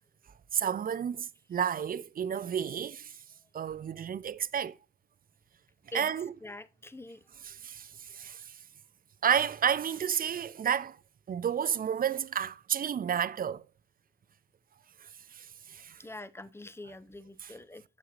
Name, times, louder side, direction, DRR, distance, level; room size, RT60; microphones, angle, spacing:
voice 1, 0.5-3.1 3.5-4.7 5.9-6.3 7.4-8.6 9.2-11.0 11.3-13.6 15.3-16.0 17.4-17.5, right 8 dB, 30° right, 0.5 m, -31 dB
voice 2, 6.4-7.2 16.0-17.8, left 1 dB, 10° left, 0.7 m, -44 dB
8.3 x 7.1 x 2.5 m
hypercardioid pair, 50°, 31 cm